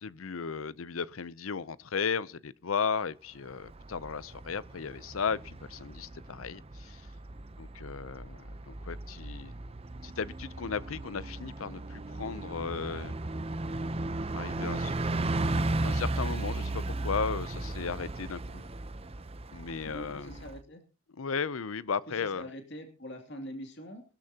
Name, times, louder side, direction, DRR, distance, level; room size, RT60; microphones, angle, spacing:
voice 1, 0.0-7.0 7.6-9.6 10.0-13.2 14.3-14.9 15.8-18.6 19.5-20.3 21.2-22.4, left 5 dB, 80° left, 0.6 m, -35 dB
Bus, 3.5-20.6, right 2 dB, 30° right, 0.7 m, -35 dB
voice 2, 19.8-20.8 22.1-24.0, equal, 55° left, 2.7 m, -44 dB
21.5 x 13.0 x 2.9 m
head